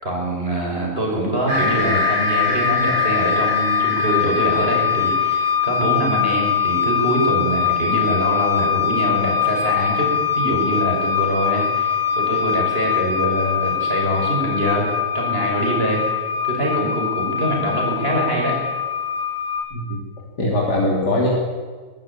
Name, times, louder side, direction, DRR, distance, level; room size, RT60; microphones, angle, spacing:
voice 1, 0.0-14.9 15.1-16.0 16.4-18.6, right 1 dB, 35° right, -1 dB, 6.2 m, -24 dB
sound 1, 1.5-19.6, left 7 dB, 90° right, 5.4 m, -22 dB
voice 2, 19.7-20.0 20.4-21.3, left 1 dB, 85° left, -3 dB, 3.7 m, -21 dB
23.0 x 14.5 x 8.7 m, 1.5 s
omnidirectional pair, 1.7 m